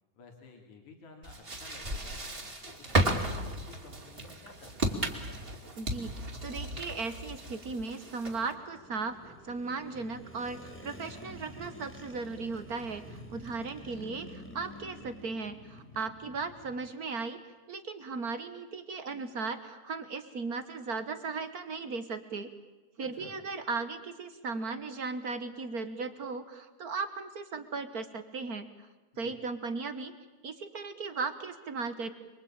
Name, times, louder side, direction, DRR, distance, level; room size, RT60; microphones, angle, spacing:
voice 1, 0.1-5.0 23.0-23.4 29.2-29.4, left 4 dB, 70° left, 2 dB, 4.1 m, -54 dB
sound 1, 1.2-8.5, right 1 dB, 20° right, 2.6 m, -34 dB
sound 2, 2.2-16.9, equal, 5° left, 2.8 m, -51 dB
voice 2, 5.8-17.4 17.7-22.5 23.0-28.7 29.2-30.1 30.4-32.1, right 4 dB, 55° right, 9 dB, 1.0 m, -37 dB
27.5 x 22.5 x 8.8 m, 1.2 s
omnidirectional pair, 3.5 m